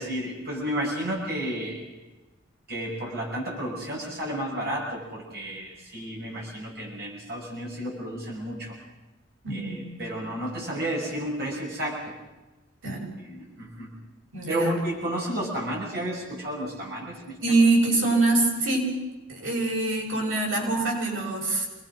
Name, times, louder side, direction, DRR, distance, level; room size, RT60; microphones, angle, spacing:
voice 1, 0.0-1.8 2.7-8.8 9.5-12.1 13.2-13.9 14.5-17.6, right 1 dB, 50° right, -2 dB, 6.2 m, -32 dB
voice 2, 9.4-9.9 12.8-13.1 14.3-14.7 17.4-18.9 19.3-21.7, right 2 dB, 90° right, -2 dB, 7.5 m, -24 dB
28.5 x 20.5 x 6.1 m, 1.1 s
head